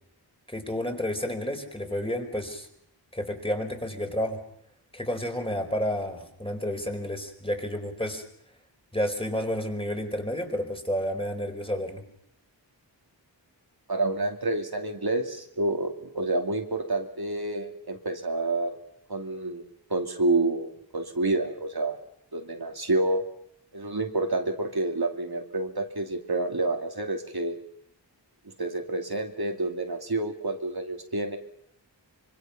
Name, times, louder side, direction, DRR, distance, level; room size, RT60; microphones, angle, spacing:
voice 1, 0.5-2.7 3.1-4.4 4.9-8.2 8.9-12.0, equal, 10° left, 4 dB, 4.4 m, -30 dB
voice 2, 13.9-18.7 19.1-19.6 19.9-22.0 22.3-23.2 23.7-27.5 28.6-31.4, right 2 dB, 55° right, 4 dB, 2.6 m, -28 dB
25.5 x 24.0 x 5.9 m, 0.74 s
wide cardioid pair, 60°, 43 cm